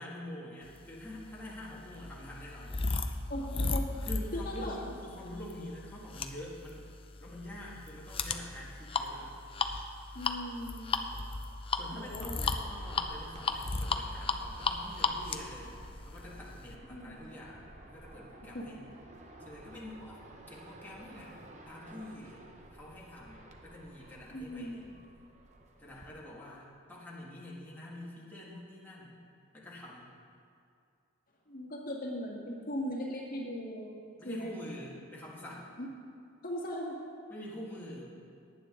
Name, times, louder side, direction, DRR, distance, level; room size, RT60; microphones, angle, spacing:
voice 1, 0.0-2.8 4.0-6.9 7.2-9.4 11.7-15.8 16.1-18.8 19.4-20.2 20.5-22.4 22.7-25.0 25.8-29.2 29.5-30.1 34.2-35.8 37.3-38.1, left 1 dB, 10° left, -6 dB, 1.9 m, -46 dB
sound 1, 1.1-16.7, left 4 dB, 25° left, 0.6 m, -35 dB
voice 2, 3.3-3.9 4.3-4.8 10.1-10.9 11.9-12.4 16.9-17.2 18.5-18.7 24.3-24.8 31.5-33.9 34.2-34.5 35.8-35.9 36.4-37.0, equal, 45° left, -3 dB, 1.7 m, -38 dB
sound 2, 12.0-26.1, right 1 dB, 35° right, 1.0 m, -53 dB
18.0 x 9.4 x 3.8 m, 2.4 s
head